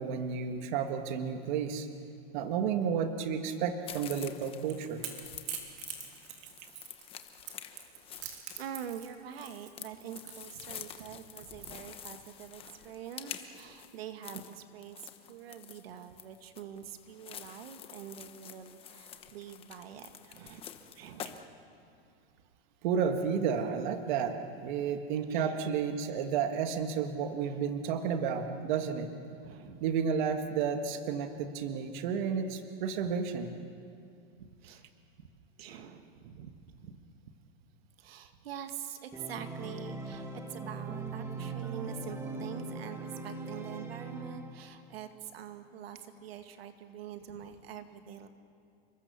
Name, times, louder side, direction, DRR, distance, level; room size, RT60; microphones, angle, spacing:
voice 1, 0.0-1.9 2.3-5.0 22.8-29.1 29.8-33.5, right 7 dB, 50° right, 6 dB, 1.8 m, -32 dB
sound 1, 3.9-21.4, left 9 dB, 20° left, 1.0 m, -48 dB
Crackle / Crack, 4.3-12.5, right 8 dB, 35° right, 3.3 m, -45 dB
voice 2, 8.1-20.6 20.9-21.4 25.3-25.7 27.4-27.6 29.4-29.8 31.4-31.8 34.4-34.9 35.2-35.3 35.6-37.0 38.0-48.3, right 9 dB, 75° right, 7 dB, 2.0 m, -45 dB
Organ, 39.1-44.9, right 3 dB, 10° right, 1.4 m, -40 dB
29.5 x 23.5 x 6.9 m, 2.5 s
supercardioid pair, 165°, 30 cm